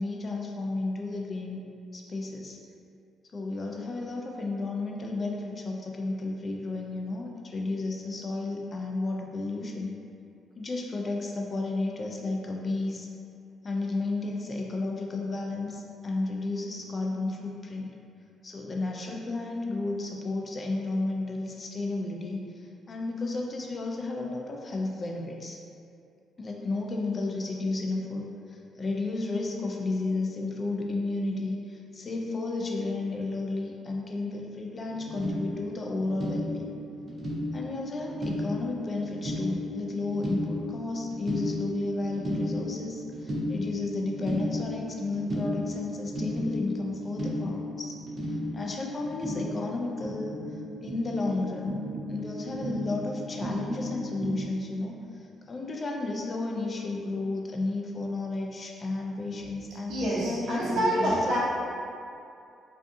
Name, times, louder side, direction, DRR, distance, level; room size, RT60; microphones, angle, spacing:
voice 1, 0.0-1.6 1.9-2.6 3.3-10.0 10.6-13.1 13.6-17.9 18.4-25.6 26.4-36.7 37.5-47.9 48.5-50.4 50.8-51.8 52.1-61.2, left 2 dB, 35° left, 0 dB, 0.3 m, -32 dB
sound 1, 34.9-54.4, equal, 40° right, 0.5 m, -35 dB
voice 2, 59.9-61.4, equal, 65° right, -10 dB, 0.8 m, -26 dB
2.5 x 2.3 x 2.6 m, 2.5 s
cardioid pair, 90°, 0 cm